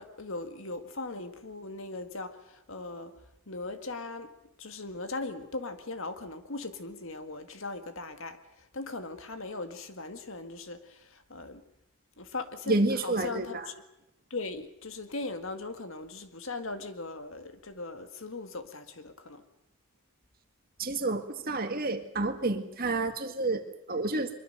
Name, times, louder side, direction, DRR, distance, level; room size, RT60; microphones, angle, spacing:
voice 1, 0.0-3.1 3.5-4.3 4.6-11.6 12.2-13.8 14.3-19.4, left 3 dB, 65° left, 8 dB, 1.9 m, -39 dB
voice 2, 12.7-13.6 20.8-24.3, right 2 dB, 40° right, 7 dB, 2.0 m, -29 dB
23.5 x 23.0 x 6.7 m, 0.81 s
head